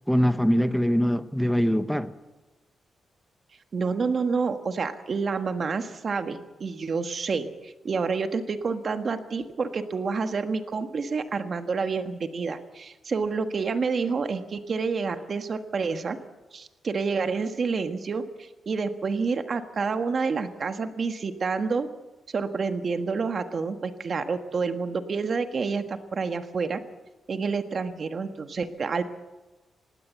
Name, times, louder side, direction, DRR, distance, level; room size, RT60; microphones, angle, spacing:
voice 1, 0.1-2.1, equal, ahead, 0.8 m, -23 dB
voice 2, 3.7-16.2 16.5-21.9 22.3-26.8 27.3-29.0, right 4 dB, 35° right, 1.4 m, -28 dB
19.5 x 16.5 x 8.3 m
wide cardioid pair, 160°, 0 cm